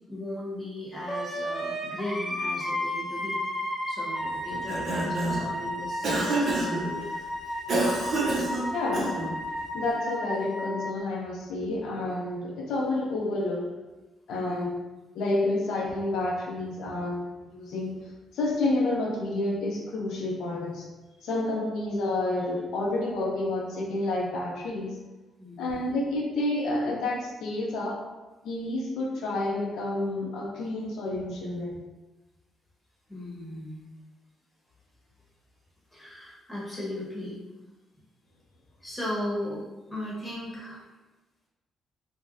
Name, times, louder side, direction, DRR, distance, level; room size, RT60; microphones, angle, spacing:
voice 1, 0.1-3.4 3.9-7.1 8.0-8.4 14.4-14.7 25.4-25.8 31.2-31.5 33.1-33.8 35.9-37.4 38.8-40.9, left 1 dB, 10° left, -6 dB, 1.2 m, -37 dB
Wind instrument woodwind instrument, 1.1-10.9, left 1 dB, 10° right, 1.2 m, -33 dB
Cough, 4.5-5.5 6.0-6.9 7.7-9.4, right 2 dB, 60° right, 0.7 m, -27 dB
voice 2, 8.7-9.2 9.7-13.7 14.3-14.7 15.1-20.9 21.2-25.0 25.6-28.0 28.4-31.8, left 2 dB, 80° left, -2 dB, 0.5 m, -29 dB
3.4 x 2.1 x 2.5 m, 1.1 s
cardioid pair, 90°, 0 cm